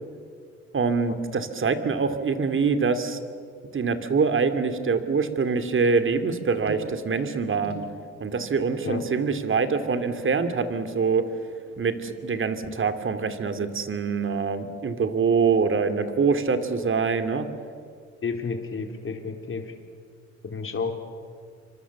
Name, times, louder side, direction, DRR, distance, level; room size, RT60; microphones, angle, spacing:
voice 1, 0.7-3.2 3.7-7.7 8.2-11.2 11.8-17.5, right 5 dB, 40° right, 9 dB, 2.6 m, -24 dB
sound 1, 6.7-13.2 13.5-13.9 14.3-14.4, right 5 dB, 65° right, 3.7 m, -47 dB
voice 2, 18.2-19.7 20.4-20.9, left 5 dB, 45° left, 4 dB, 3.9 m, -31 dB
28.0 x 25.0 x 7.2 m, 2.2 s
cardioid pair, 90°, 30 cm